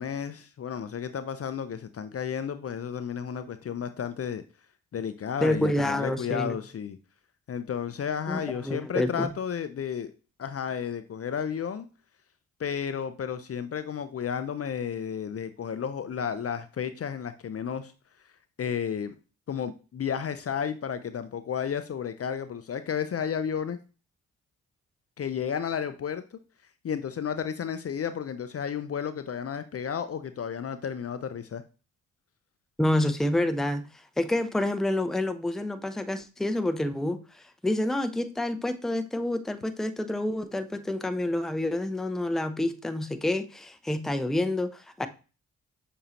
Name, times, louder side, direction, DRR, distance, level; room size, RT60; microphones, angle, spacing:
voice 1, 0.0-4.4 4.9-7.0 7.5-10.1 10.4-11.9 12.6-17.9 18.6-19.2 19.5-23.8 25.2-26.2 26.8-31.6, left 7 dB, 40° left, 0.5 m, -32 dB
voice 2, 5.4-6.6 8.3-9.3 32.8-33.9 34.2-45.1, left 1 dB, ahead, 0.6 m, -28 dB
6.6 x 2.8 x 2.9 m
hypercardioid pair, 40°, 37 cm